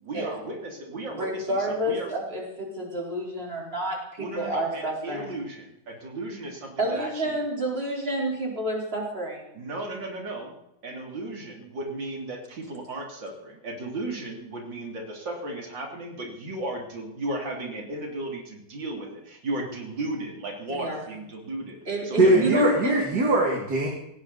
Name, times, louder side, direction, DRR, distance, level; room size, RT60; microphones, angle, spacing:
voice 1, 0.0-2.1 4.2-7.3 9.5-10.6 10.8-21.8 22.0-22.5, right 2 dB, 85° right, 1 dB, 3.8 m, -35 dB
voice 2, 1.2-5.4 6.8-9.4 20.7-21.0 21.9-23.0, right 1 dB, 30° right, -1 dB, 4.5 m, -29 dB
voice 3, 22.2-23.9, right 2 dB, 60° right, 0 dB, 3.0 m, -21 dB
19.0 x 18.0 x 4.2 m, 0.87 s
omnidirectional pair, 2.0 m